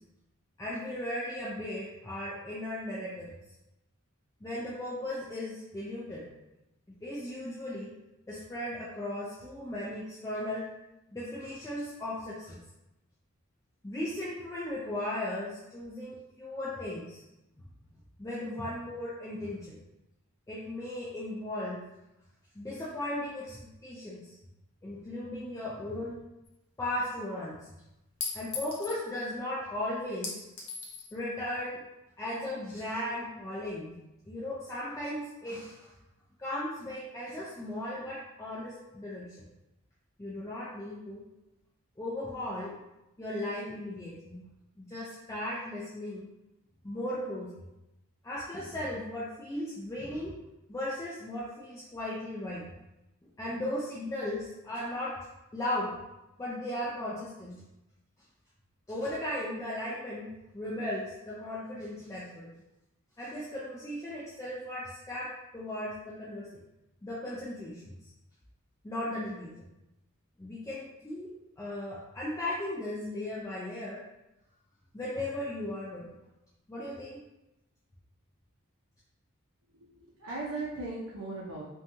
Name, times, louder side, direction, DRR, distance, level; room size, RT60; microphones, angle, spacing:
voice 1, 0.6-3.3 4.4-6.3 7.0-8.0 8.3-10.7 11.1-12.6 13.8-17.2 18.2-19.8 20.5-21.8 22.6-24.3 24.8-26.2 26.8-27.6 28.3-30.4 31.1-31.8 32.2-34.0 34.3-35.9 36.4-39.5 40.2-41.2 42.0-42.8 43.2-44.5 44.8-46.3 46.8-47.6 48.2-50.4 50.7-52.6 53.4-55.2 55.5-56.0 56.4-57.6 58.9-62.5 63.2-66.5 67.0-67.9 68.8-69.5 70.4-74.0 74.9-76.2 76.7-77.2, left 1 dB, 15° left, -7 dB, 0.3 m, -36 dB
Chink clink, 26.5-26.6 28.2-29.0 30.2-31.1, left 5 dB, 65° left, 0.7 m, -38 dB
voice 2, 79.8-81.6, right 2 dB, 65° right, -5 dB, 0.5 m, -38 dB
2.6 x 2.2 x 2.8 m, 0.95 s
head